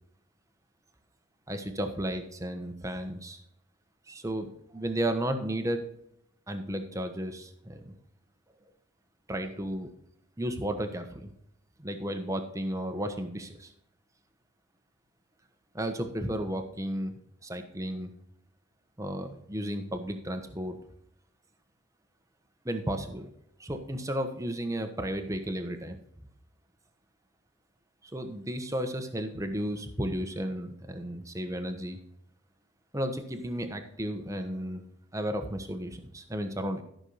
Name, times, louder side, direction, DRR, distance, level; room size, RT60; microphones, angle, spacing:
voice 1, 1.5-3.4 4.1-5.8 6.5-7.9 9.3-9.9 10.4-11.3 11.8-13.7 15.7-18.1 19.0-20.8 22.6-23.3 23.6-26.0 28.1-32.0 32.9-34.8 35.1-36.8, right 1 dB, 15° right, 6 dB, 1.2 m, -33 dB
13.5 x 6.3 x 4.1 m, 0.74 s
head